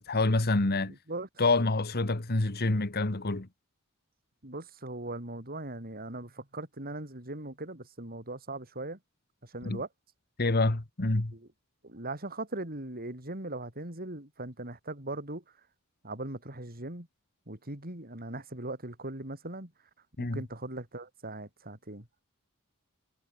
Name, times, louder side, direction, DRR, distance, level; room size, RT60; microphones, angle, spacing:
voice 1, 0.0-0.9 1.4-3.5 9.6-9.8 10.4-11.3 20.2-20.4, left 2 dB, 50° left, 1.6 m, -27 dB
voice 2, 0.9-1.3 4.4-9.0 9.4-9.9 11.3-11.5 11.8-15.4 16.0-17.1 17.5-19.7 20.2-22.2, right 2 dB, 45° right, 5.7 m, -39 dB
head